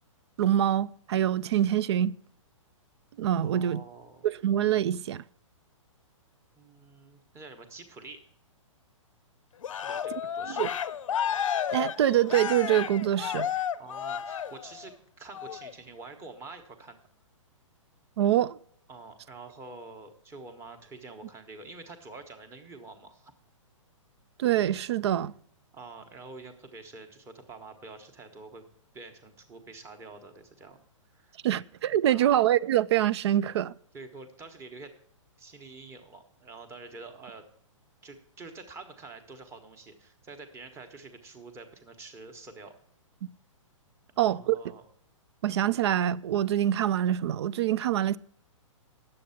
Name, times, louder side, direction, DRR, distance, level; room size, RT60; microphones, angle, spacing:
voice 1, 0.4-2.1 3.2-3.8 4.2-5.2 10.6-10.7 11.7-13.5 18.2-18.6 24.4-25.3 31.4-33.7 44.2-44.6 45.4-48.2, right 11 dB, 55° right, 0.4 m, -25 dB
voice 2, 3.4-4.3 6.6-8.2 9.7-10.8 13.8-17.0 18.9-23.3 25.7-28.6 28.9-30.8 31.1-31.4 32.1-32.5 33.9-34.9 35.4-37.5 38.0-42.7 44.1-44.8, right 3 dB, 15° right, 1.1 m, -47 dB
Cheering, 9.6-14.9 15.3-15.7, left 9 dB, 75° left, 0.6 m, -32 dB
9.9 x 7.7 x 5.7 m
hypercardioid pair, 140°, 17 cm